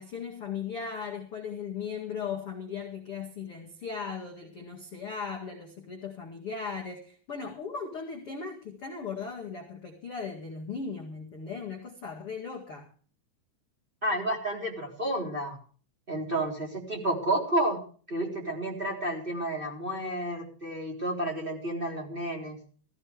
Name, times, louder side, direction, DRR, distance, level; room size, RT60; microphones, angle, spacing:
voice 1, 0.0-12.9, left 5 dB, 50° left, 1.8 m, -37 dB
voice 2, 14.0-15.6 16.1-17.8 18.1-22.6, right 1 dB, 10° right, 3.1 m, -31 dB
17.5 x 15.5 x 3.4 m
omnidirectional pair, 5.6 m